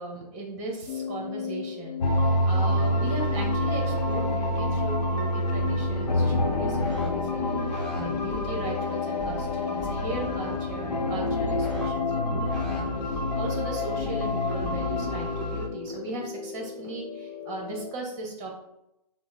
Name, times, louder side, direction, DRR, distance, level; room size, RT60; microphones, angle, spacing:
voice 1, 0.0-7.6 7.9-18.5, right 2 dB, 25° right, 0 dB, 1.0 m, -37 dB
sound 1, 0.9-17.9, left 7 dB, 40° left, 0.8 m, -36 dB
sound 2, 2.0-15.7, left 1 dB, 75° left, 0.8 m, -28 dB
sound 3, 5.6-7.1 7.4-8.6 9.2-9.5 9.8-11.9 12.2-13.4 14.0-14.3 14.6-15.2, right 1 dB, 5° left, 0.5 m, -36 dB
5.8 x 2.1 x 4.0 m, 0.86 s
hypercardioid pair, 150°, 21 cm